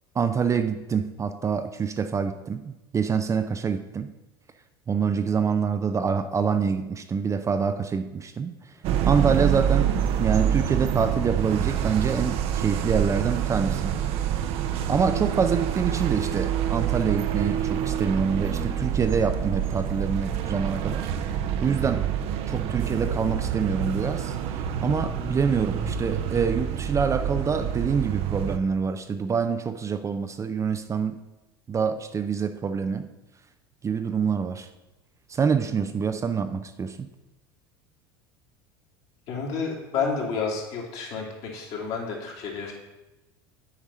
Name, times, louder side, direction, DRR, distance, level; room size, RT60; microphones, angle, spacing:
voice 1, 0.2-4.1 4.9-8.5 9.1-9.9 10.2-13.9 14.9-21.1 21.6-22.1 22.5-24.4 24.8-31.2 31.7-33.1 33.8-34.7 35.3-37.1, right 6 dB, 25° right, 9 dB, 0.5 m, -26 dB
sound 1, 8.8-28.6, right 9 dB, 55° right, 0.8 m, -27 dB
voice 2, 39.3-42.7, left 5 dB, 55° left, -1 dB, 2.5 m, -30 dB
8.7 x 4.7 x 5.5 m, 1.0 s
hypercardioid pair, 85°, 12 cm